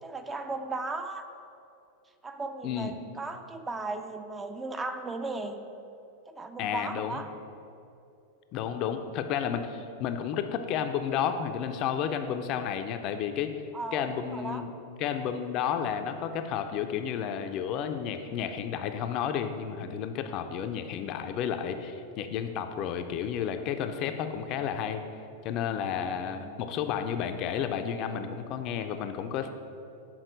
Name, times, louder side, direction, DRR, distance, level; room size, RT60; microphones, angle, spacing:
voice 1, 0.0-1.2 2.2-5.6 6.3-7.3 13.7-14.6 25.9-26.6, right 3 dB, 15° right, 7 dB, 0.4 m, -36 dB
voice 2, 6.6-7.2 8.5-13.5 13.9-14.7 15.0-25.0 25.4-29.5, left 8 dB, 45° left, 7 dB, 0.4 m, -32 dB
6.2 x 3.7 x 5.1 m, 2.6 s
hypercardioid pair, 95°, 0 cm